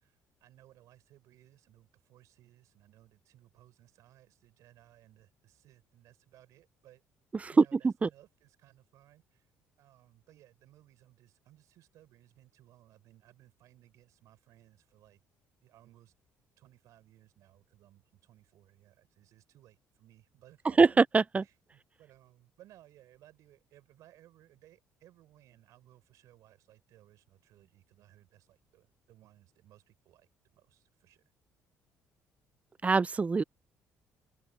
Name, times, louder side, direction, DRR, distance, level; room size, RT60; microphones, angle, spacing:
voice 1, 0.0-7.0 7.5-9.5 9.8-15.2 15.6-16.1 16.6-21.0 21.4-30.3 30.5-31.2, right 14 dB, 75° right, 6.5 m, -61 dB
voice 2, 7.4-8.1 20.8-21.4 32.8-33.4, right 4 dB, 25° right, 0.4 m, -24 dB
open air
supercardioid pair, 75°, 6 cm